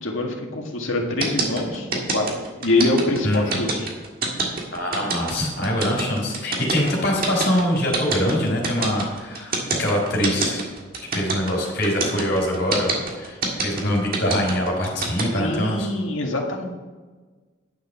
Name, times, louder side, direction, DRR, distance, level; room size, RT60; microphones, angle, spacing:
voice 1, 0.0-2.3 2.6-3.9 15.4-16.7, left 2 dB, 80° left, 1 dB, 1.9 m, -24 dB
sound 1, 1.2-15.2, right 3 dB, 45° right, 1.8 m, -25 dB
voice 2, 3.2-3.6 4.7-10.6 11.1-12.9 13.2-15.9, equal, 55° left, 0 dB, 3.8 m, -24 dB
11.0 x 6.8 x 5.6 m, 1.3 s
head